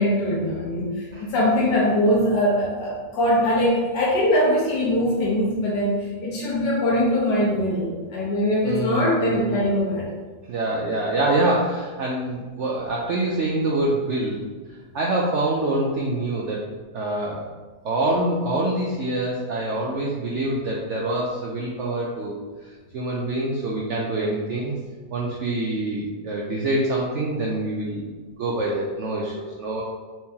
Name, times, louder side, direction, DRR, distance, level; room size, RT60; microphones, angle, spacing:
voice 1, 0.0-10.1, left 1 dB, 85° left, -5 dB, 1.6 m, -22 dB
voice 2, 8.6-9.5 10.5-14.5 14.9-16.7 16.9-17.5 17.8-22.4 22.9-24.7 25.1-28.1 28.4-29.8, right 2 dB, 80° right, -3 dB, 0.6 m, -25 dB
4.4 x 3.5 x 2.8 m, 1.4 s
omnidirectional pair, 1.8 m